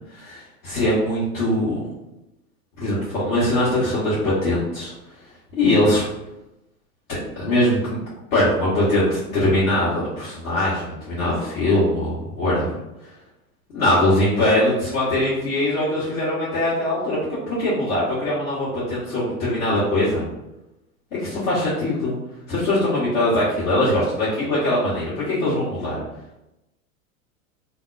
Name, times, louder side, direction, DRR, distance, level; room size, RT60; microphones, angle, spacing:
voice 1, 0.1-1.8 2.8-4.9 5.6-6.0 7.1-8.0 8.3-12.8 13.7-20.2 21.1-22.2 22.5-26.0, left 1 dB, 75° left, -11 dB, 1.3 m, -22 dB
2.7 x 2.1 x 2.4 m, 0.94 s
hypercardioid pair, 95°, 41 cm